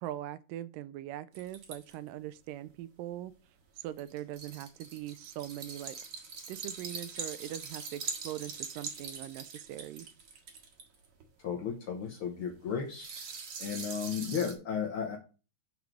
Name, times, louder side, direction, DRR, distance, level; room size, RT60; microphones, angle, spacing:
voice 1, 0.0-3.3 3.8-6.0 6.5-10.1, right 13 dB, 80° right, 2.1 m, -41 dB
sound 1, 1.3-1.9 4.0-11.3 12.9-14.5, right 5 dB, 50° right, 2.0 m, -42 dB
voice 2, 11.4-13.1 13.6-15.2, left 7 dB, 85° left, 1.1 m, -34 dB
7.2 x 4.6 x 6.0 m
omnidirectional pair, 4.1 m